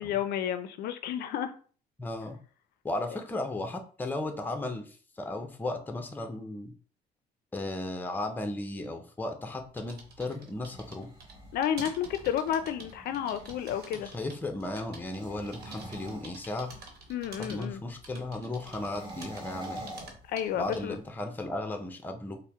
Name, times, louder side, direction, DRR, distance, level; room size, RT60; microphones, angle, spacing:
voice 1, 0.0-1.5 11.5-14.1 17.1-17.8 20.3-21.0, left 10 dB, 70° left, 10 dB, 0.4 m, -31 dB
voice 2, 2.0-2.4 2.8-6.7 7.5-11.1 13.9-16.7 17.4-19.9 20.5-22.4, left 2 dB, 10° left, 5 dB, 0.5 m, -35 dB
sound 1, 9.5-21.0, right 3 dB, 65° right, 1.1 m, -49 dB
sound 2, 10.5-14.2 15.0-17.0 18.6-20.9, right 1 dB, 20° right, 1.5 m, -46 dB
4.2 x 2.0 x 3.4 m, 0.42 s
cardioid pair, 110°, 17 cm